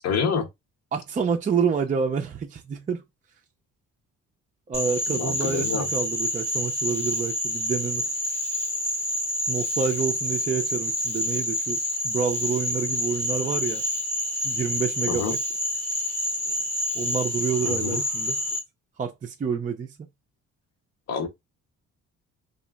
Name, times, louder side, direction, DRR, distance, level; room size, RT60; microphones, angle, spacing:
voice 1, 0.0-0.5 5.1-5.9 15.1-15.3 17.7-18.0 21.1-21.3, left 5 dB, 55° left, 0.7 m, -27 dB
voice 2, 0.9-3.0 4.7-8.1 9.5-13.8 14.4-15.4 16.9-18.4 19.0-19.9, right 6 dB, 25° right, 0.4 m, -28 dB
Frog, 4.7-18.6, left 1 dB, 5° left, 0.7 m, -28 dB
2.8 x 2.4 x 2.2 m
cardioid pair, 90°, 30 cm